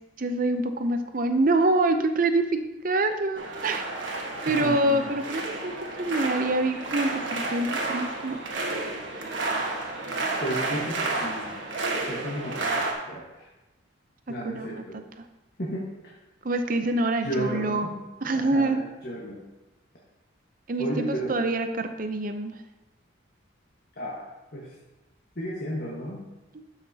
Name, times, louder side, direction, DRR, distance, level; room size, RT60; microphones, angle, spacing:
voice 1, 0.2-3.8 4.5-8.6 14.4-14.8 16.4-17.9 18.2-18.8 20.7-22.6, right 2 dB, 45° right, 7 dB, 0.6 m, -26 dB
sound 1, 3.3-12.9, right 2 dB, 65° right, 1.3 m, -31 dB
voice 2, 4.6-5.1 10.4-11.6 12.1-13.5 14.3-15.0 15.6-16.1 17.2-18.0 18.3-19.4 20.8-21.4 24.0-24.7 25.3-26.2, right 1 dB, 50° left, -5 dB, 1.4 m, -33 dB
12.5 x 5.9 x 2.8 m, 1.0 s
head